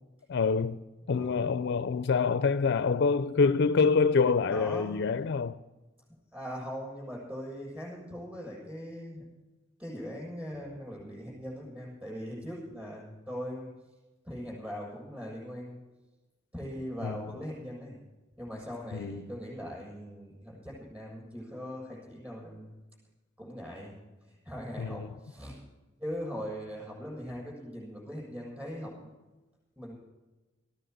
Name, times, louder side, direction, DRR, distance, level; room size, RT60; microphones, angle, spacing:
voice 1, 0.3-0.8 1.1-5.6 17.0-17.2 18.9-19.3 24.8-25.1, left 5 dB, 55° left, 0.4 m, -26 dB
voice 2, 1.1-1.5 4.5-5.0 6.3-9.3 9.8-13.7 14.2-15.8 16.5-18.0 18.4-22.7 23.4-23.9 24.2-25.6 26.0-28.9 29.8-29.9, equal, 10° right, 7.1 m, -40 dB
15.5 x 10.0 x 7.9 m
head